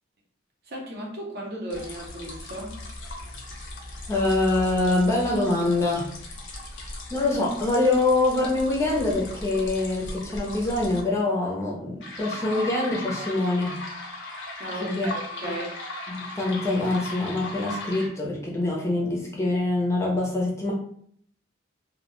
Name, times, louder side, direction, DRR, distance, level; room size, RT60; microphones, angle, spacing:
voice 1, 0.7-2.7 14.6-15.7, right 1 dB, 50° right, -1 dB, 0.6 m, -35 dB
sound 1, 1.7-11.0 12.0-18.1, left 2 dB, 60° left, 0.6 m, -38 dB
voice 2, 4.1-6.1 7.1-13.8 14.8-15.1 15.4-15.5 16.1-20.7, left 2 dB, 15° left, -3 dB, 0.5 m, -24 dB
2.2 x 2.1 x 2.9 m, 0.62 s
head